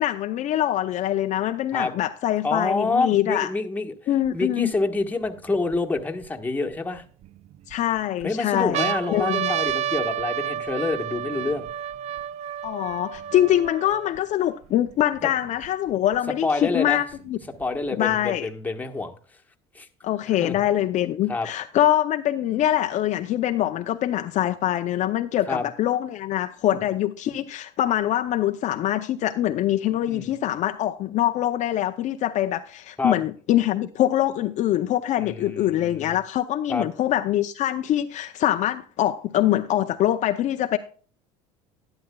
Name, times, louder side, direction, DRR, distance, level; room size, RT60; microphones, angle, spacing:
voice 1, 0.0-3.5 4.1-4.7 7.7-9.5 12.6-17.4 18.0-18.5 20.0-40.8, left 12 dB, 50° left, 0.6 m, -24 dB
voice 2, 2.4-3.9 4.3-7.0 8.2-11.7 16.4-17.0 17.6-19.1 19.7-19.9 20.4-20.6 21.3-21.5 25.5-25.6 26.7-26.8 30.1-30.3 33.0-33.1 35.2-36.2 36.7-36.9, left 3 dB, 10° left, 1.3 m, -27 dB
sound 1, 4.3-4.4 5.0-6.3 7.0-7.8 8.2-8.3 8.6-14.2 14.9-15.0 15.2-16.2 17.1-18.2, right 10 dB, 40° right, 0.4 m, -30 dB
12.0 x 10.5 x 2.3 m
supercardioid pair, 105°, 16 cm